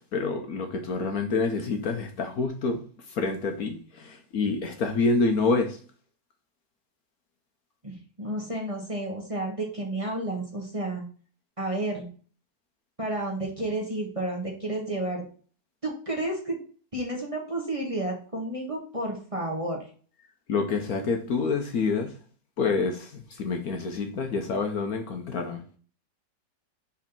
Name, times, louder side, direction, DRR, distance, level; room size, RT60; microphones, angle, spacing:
voice 1, 0.0-5.8 20.5-22.2 22.6-25.6, left 4 dB, 60° left, 1.2 m, -27 dB
voice 2, 7.8-11.0 11.6-12.1 13.0-15.2 15.8-16.6 16.9-19.8, right 1 dB, 20° right, 1.4 m, -31 dB
5.0 x 4.4 x 5.3 m
omnidirectional pair, 1.9 m